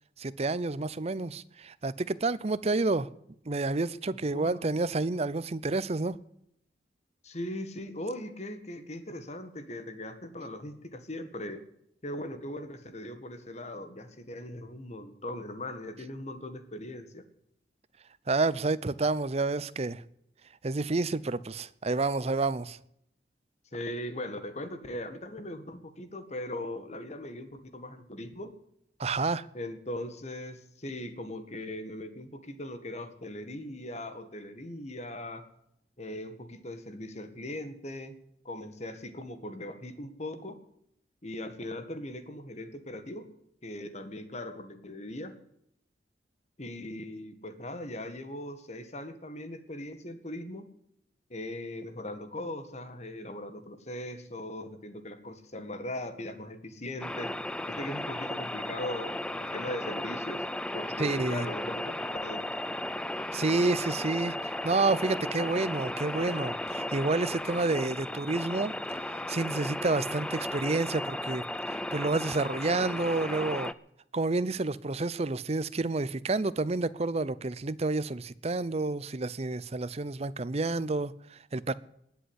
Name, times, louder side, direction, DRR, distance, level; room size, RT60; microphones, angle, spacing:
voice 1, 0.2-3.1 3.5-6.2 18.3-20.0 20.6-22.8 29.0-29.5 61.0-61.5 63.3-68.7 69.1-73.7 74.1-81.7, right 3 dB, 35° right, 0.6 m, -29 dB
voice 2, 4.3-4.7 7.2-11.6 12.0-17.2 23.7-28.5 29.5-35.4 36.0-38.2 38.4-40.6 41.2-43.3 43.6-45.3 46.6-50.7 51.3-57.3 57.7-60.5 60.7-62.6, left 1 dB, 40° left, 1.8 m, -39 dB
sound 1, 57.0-73.7, left 1 dB, 5° left, 0.5 m, -35 dB
19.5 x 8.0 x 8.2 m
head